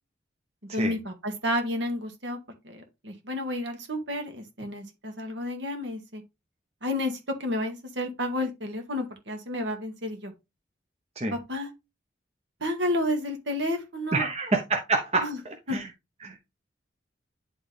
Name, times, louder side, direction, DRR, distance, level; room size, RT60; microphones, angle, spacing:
voice 1, 0.7-2.4 2.6-6.2 6.8-10.3 11.3-11.7 12.6-14.3 15.2-15.4 15.7-15.8, left 1 dB, 70° right, 2.0 m, -31 dB
voice 2, 14.1-15.3 15.7-15.9 16.2-16.5, right 3 dB, 35° right, 0.9 m, -27 dB
10.5 x 4.0 x 3.4 m
head